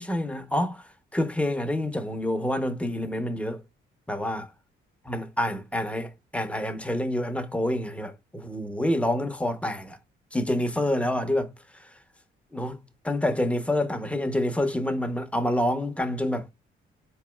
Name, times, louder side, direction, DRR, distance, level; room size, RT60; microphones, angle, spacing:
voice 1, 0.0-3.6 4.1-4.5 5.1-10.0 10.3-11.9 12.5-12.8 13.0-16.5, left 1 dB, 5° left, 0.7 m, -27 dB
4.0 x 3.0 x 2.2 m
cardioid pair, 90°, 20 cm